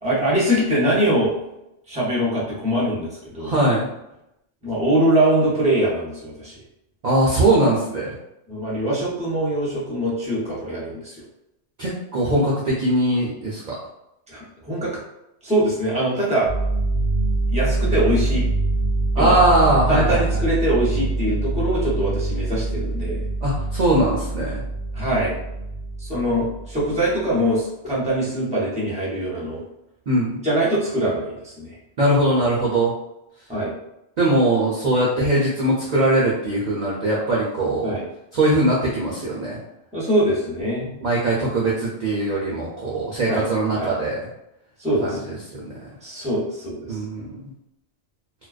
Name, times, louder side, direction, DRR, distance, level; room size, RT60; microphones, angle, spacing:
voice 1, 0.0-1.3 1.9-3.5 4.6-6.6 8.5-11.2 14.3-14.9 15.4-16.5 17.5-18.5 19.2-19.4 19.9-23.2 24.9-25.4 26.0-29.6 30.4-31.8 33.5-33.8 37.8-38.0 39.9-40.9 43.3-43.5 43.8-43.9 44.8-45.2 46.0-47.0, right 1 dB, 5° right, -7 dB, 0.7 m, -23 dB
voice 2, 3.4-3.9 7.0-8.1 11.8-13.7 19.2-20.2 23.4-24.6 30.1-30.4 32.0-32.9 34.2-38.0 38.3-39.6 41.0-44.2 45.0-45.6 46.9-47.3, right 1 dB, 55° right, -5 dB, 0.5 m, -21 dB
sound 1, 16.5-27.2 27.8-28.1, right 2 dB, 45° left, 0.7 m, -25 dB
2.4 x 2.1 x 2.3 m, 0.86 s
omnidirectional pair, 1.2 m